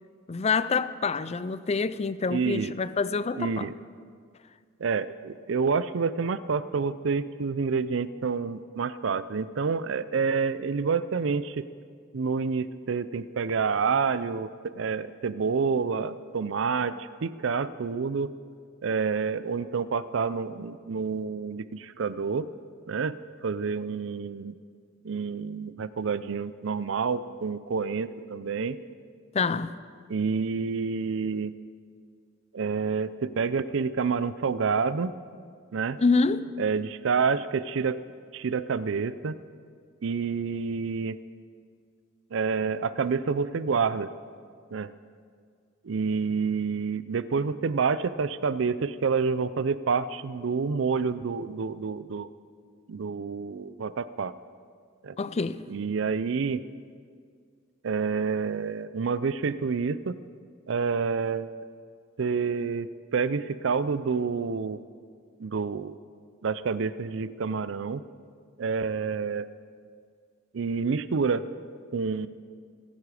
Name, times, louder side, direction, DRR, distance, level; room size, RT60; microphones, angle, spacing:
voice 1, 0.3-3.7 29.3-29.7 36.0-36.6 55.2-55.7, left 4 dB, 30° left, 0.4 m, -26 dB
voice 2, 2.3-2.7 3.4-3.7 4.8-11.7 12.1-18.3 18.8-22.5 22.9-23.2 23.4-24.6 25.0-28.8 30.1-31.5 32.5-35.1 35.7-36.0 36.6-38.0 38.3-39.3 40.0-41.2 42.3-44.1 44.7-44.9 45.8-52.3 52.9-54.3 55.0-55.2 55.7-56.6 57.8-60.1 60.7-61.6 62.2-64.8 65.4-66.0 66.4-68.0 68.6-69.5 70.5-71.5 71.9-72.3, right 5 dB, 65° right, 0.5 m, -28 dB
25.5 x 9.7 x 4.9 m
head